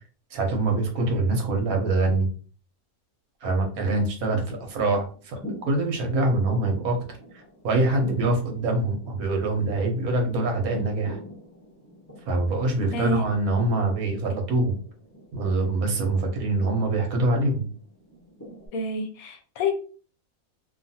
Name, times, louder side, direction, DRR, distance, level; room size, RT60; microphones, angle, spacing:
voice 1, 0.3-2.3 3.4-5.4 5.7-11.2 12.3-14.8 15.3-17.7, right 2 dB, 75° right, 2 dB, 1.2 m, -24 dB
sound 1, 4.4-18.7, equal, 15° left, 0.7 m, -45 dB
voice 2, 18.7-19.7, left 2 dB, 80° left, 5 dB, 1.0 m, -28 dB
2.7 x 2.4 x 2.7 m, 0.39 s
omnidirectional pair, 1.6 m